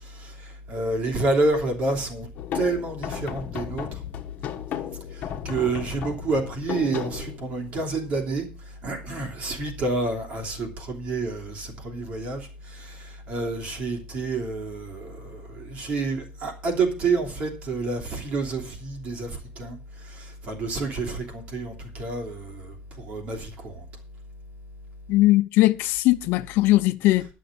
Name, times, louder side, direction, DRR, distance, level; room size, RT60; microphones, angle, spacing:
voice 1, 0.0-2.3 2.5-4.0 5.1-8.5 8.8-19.8 20.0-23.8, right 3 dB, 45° right, 2.9 m, -29 dB
sound 1, 2.4-7.9, left 9 dB, 50° left, 1.3 m, -35 dB
voice 2, 25.1-27.3, left 18 dB, 80° left, 0.7 m, -19 dB
11.0 x 6.5 x 6.8 m
cardioid pair, 175°, 4 cm